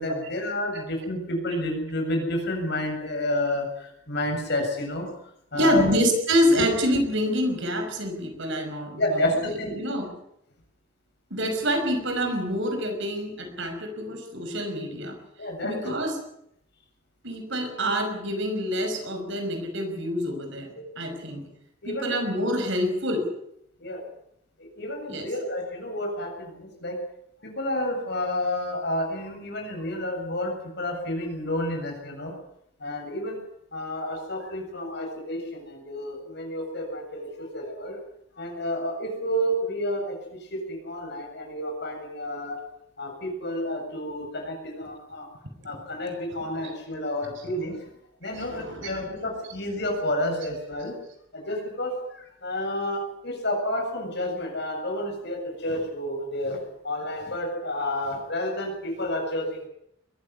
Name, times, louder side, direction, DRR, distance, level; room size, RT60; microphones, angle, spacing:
voice 1, 0.0-5.1 5.5-5.9 9.0-9.8 15.4-15.9 21.8-22.2 23.8-24.0 24.6-27.0 27.4-32.3 32.8-33.4 33.7-38.0 38.4-42.6 43.0-45.3 45.6-47.9 48.2-51.0 51.3-56.6 56.8-59.7, left 1 dB, 55° left, 3 dB, 7.5 m, -30 dB
voice 2, 5.5-9.4 9.7-10.1 11.3-15.2 15.6-16.2 17.2-21.4 21.9-23.3 25.1-25.3 47.4-47.5 48.2-49.0, equal, 60° right, 5 dB, 5.7 m, -27 dB
22.0 x 15.0 x 9.7 m, 0.74 s
head